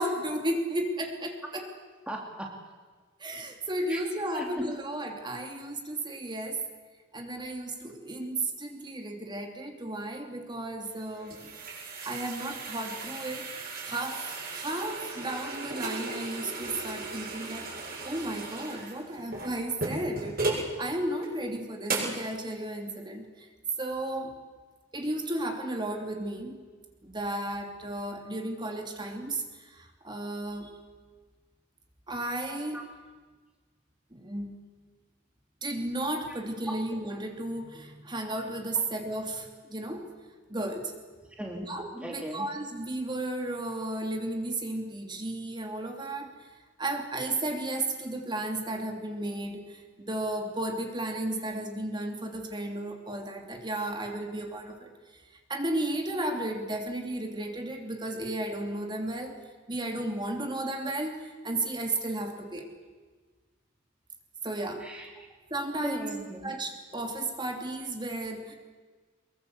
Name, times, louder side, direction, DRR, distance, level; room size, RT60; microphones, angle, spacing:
voice 1, 0.0-1.7 3.2-6.6 7.1-11.4 12.0-13.5 13.8-17.7 18.0-23.5 23.8-24.3 24.9-26.6 27.0-30.7 32.1-32.8 34.1-34.6 35.6-40.1 40.5-40.9 41.6-46.5 46.8-55.2 55.5-59.4 59.7-62.7 64.4-64.9 65.5-66.1 66.4-68.6, right 1 dB, 25° right, 3 dB, 3.0 m, -34 dB
voice 2, 2.1-2.6 3.9-4.0 4.3-4.7 32.7-32.8 36.7-36.8 41.4-42.5 64.8-65.3 65.8-66.5, right 1 dB, 5° right, 0 dB, 2.7 m, -38 dB
sound 1, 10.9-20.7 21.2-21.3 21.9-22.2, right 3 dB, 50° right, 7.4 m, -36 dB
24.5 x 22.0 x 8.1 m, 1.4 s
head